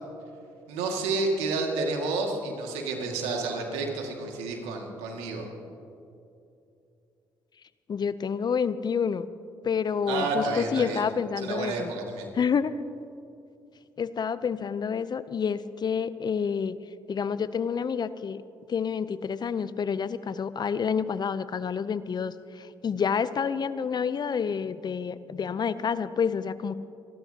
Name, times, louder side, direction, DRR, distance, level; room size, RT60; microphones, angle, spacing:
voice 1, 0.7-5.5 10.1-11.0 11.4-12.3, right 3 dB, 80° right, 1 dB, 2.1 m, -30 dB
voice 2, 7.9-9.3 9.6-11.9 12.3-12.7 14.0-16.8 17.1-18.4 18.7-26.7, left 6 dB, 45° left, 15 dB, 0.6 m, -28 dB
26.5 x 12.5 x 2.9 m, 2.6 s
hypercardioid pair, 55°, 10 cm